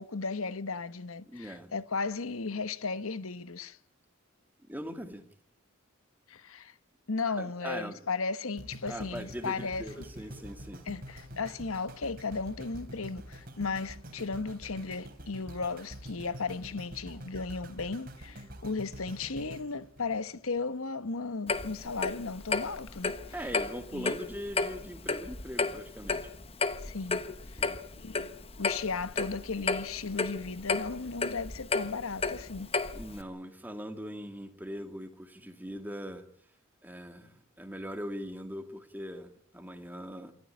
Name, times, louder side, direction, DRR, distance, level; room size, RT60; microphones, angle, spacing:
voice 1, 0.0-3.8 6.3-6.7 7.1-9.8 10.9-23.1 23.9-24.2 26.8-27.2 27.5-27.7 28.0-28.3 28.6-32.7, left 4 dB, 80° left, 1.1 m, -35 dB
voice 2, 1.2-1.7 4.6-5.2 7.4-8.0 8.9-10.8 23.3-26.3 27.6-27.8 32.9-36.3 36.8-40.3, equal, 10° right, 2.2 m, -41 dB
sound 1, 8.6-20.8 21.3-21.4, right 1 dB, 45° right, 3.3 m, -46 dB
Clock, 21.5-33.2, left 4 dB, 25° left, 1.2 m, -33 dB
25.5 x 14.0 x 9.9 m
head